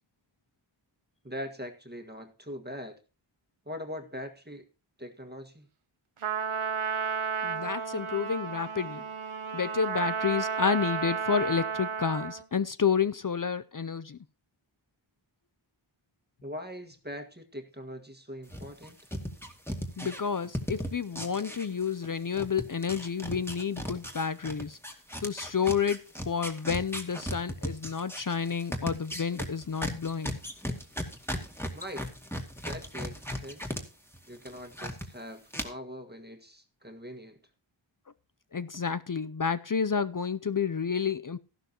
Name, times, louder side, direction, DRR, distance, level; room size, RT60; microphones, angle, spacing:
voice 1, 1.2-3.0 3.7-4.7 5.0-5.7 16.4-19.0 31.7-32.0 32.6-33.8 34.3-37.4, equal, 20° right, 1.7 m, -42 dB
Trumpet, 6.2-12.4, right 6 dB, 80° right, 0.9 m, -33 dB
voice 2, 7.4-9.1 9.5-14.2 20.0-24.8 25.2-30.4 38.5-41.4, left 6 dB, 40° left, 0.5 m, -30 dB
sound 1, 18.5-22.1 22.3-33.8 34.1-35.1 35.5-35.6, equal, 5° left, 2.2 m, -36 dB
13.5 x 12.0 x 2.9 m
wide cardioid pair, 50°, 49 cm